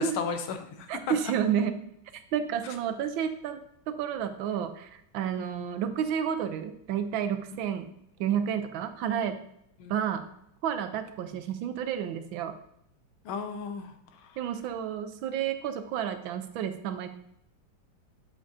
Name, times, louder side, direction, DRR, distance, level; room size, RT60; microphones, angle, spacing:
voice 1, 0.0-1.1 5.3-5.5 9.8-9.9 13.3-14.4, left 6 dB, 80° left, 7 dB, 1.6 m, -35 dB
voice 2, 0.9-1.8 2.3-3.6 3.9-7.9 8.2-9.3 9.9-10.2 10.6-12.5 14.4-17.1, right 8 dB, 75° right, 8 dB, 1.4 m, -30 dB
7.3 x 7.2 x 2.7 m, 0.74 s
omnidirectional pair, 2.3 m